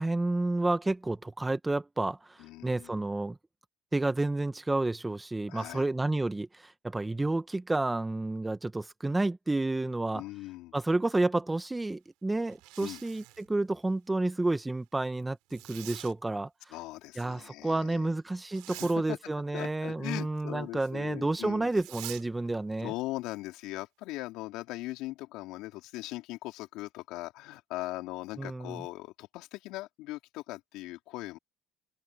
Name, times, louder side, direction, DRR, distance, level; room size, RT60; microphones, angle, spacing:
voice 1, 0.0-3.4 3.9-10.2 10.7-16.5 17.2-22.9 28.4-28.8, right 2 dB, 15° right, 1.5 m, -30 dB
voice 2, 2.4-3.0 5.5-5.8 10.1-10.7 12.8-13.0 16.7-18.1 18.7-19.2 19.5-21.7 22.8-31.4, left 18 dB, 70° left, 3.9 m, -40 dB
Zipper (clothing), 12.4-13.5 15.5-16.1 18.4-19.0 21.7-22.2, right 22 dB, 75° right, 4.3 m, -45 dB
supercardioid pair, 75°, 0 cm